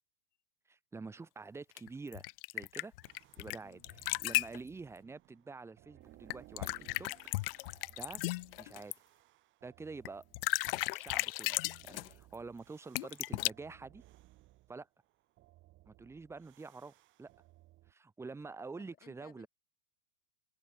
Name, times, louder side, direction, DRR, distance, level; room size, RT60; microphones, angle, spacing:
voice 1, 0.7-2.3 2.5-2.9 3.4-7.1 8.0-8.3 8.6-8.9 9.6-10.3 10.6-11.6 11.8-14.0 14.7-14.9 15.9-17.3 17.9-19.5, right 4 dB, 5° right, 2.3 m, -47 dB
sound 1, 1.8-3.6 3.8-4.6 6.3-8.9 10.0-10.1 10.3-12.1 12.9-13.5, left 20 dB, 40° left, 1.1 m, -35 dB
sound 2, 3.0-17.9, right 17 dB, 25° right, 5.1 m, -62 dB
voice 2, 18.8-19.5, left 12 dB, 20° left, 3.9 m, -61 dB
open air
supercardioid pair, 165°, 44 cm